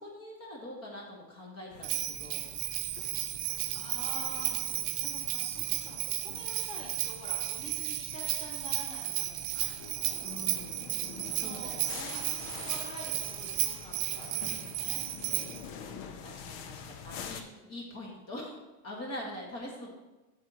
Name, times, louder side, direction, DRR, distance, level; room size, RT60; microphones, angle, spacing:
voice 1, 0.0-2.5 10.2-10.9 11.3-12.2 16.2-17.4 17.7-18.5 18.8-19.9, left 1 dB, 35° left, -2 dB, 1.8 m, -43 dB
sound 1, 1.7-17.4, left 6 dB, 60° left, 0.9 m, -47 dB
Bell, 1.8-15.6, right 15 dB, 70° right, 0.8 m, -34 dB
voice 2, 3.7-9.7 11.2-11.8 12.1-15.0 17.3-17.8, left 1 dB, 15° left, -3 dB, 1.9 m, -47 dB
9.0 x 7.9 x 2.9 m, 1.1 s
supercardioid pair, 125°, 41 cm